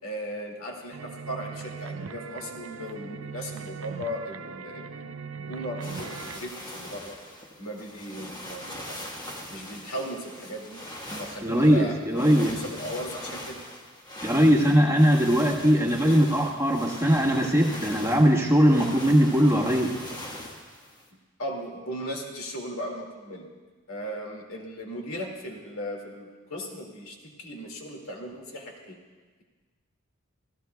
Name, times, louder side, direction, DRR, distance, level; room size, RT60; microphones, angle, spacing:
voice 1, 0.0-7.2 7.6-9.1 9.5-13.6 21.4-23.5 23.9-29.0, equal, 75° left, 1 dB, 2.3 m, -37 dB
sound 1, 0.9-6.4, right 5 dB, 75° right, 0.5 m, -39 dB
sound 2, 5.8-21.1, equal, 20° left, 1.4 m, -41 dB
voice 2, 11.4-12.6 14.2-20.0, equal, 15° right, -1 dB, 1.4 m, -20 dB
28.0 x 15.5 x 2.3 m, 1.4 s
head